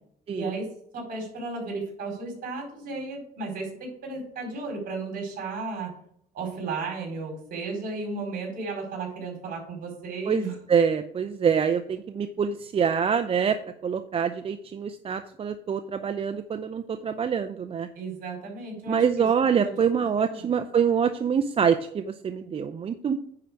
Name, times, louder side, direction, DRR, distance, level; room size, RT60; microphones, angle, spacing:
voice 1, 0.3-6.0 6.3-10.6 17.9-19.3 19.6-19.7 20.2-20.5, right 3 dB, 60° right, 0 dB, 4.6 m, -34 dB
voice 2, 10.3-13.6 13.8-17.9 18.9-23.2, right 7 dB, 35° right, 9 dB, 0.5 m, -25 dB
9.7 x 4.7 x 6.3 m, 0.68 s
cardioid pair, 110°, 17 cm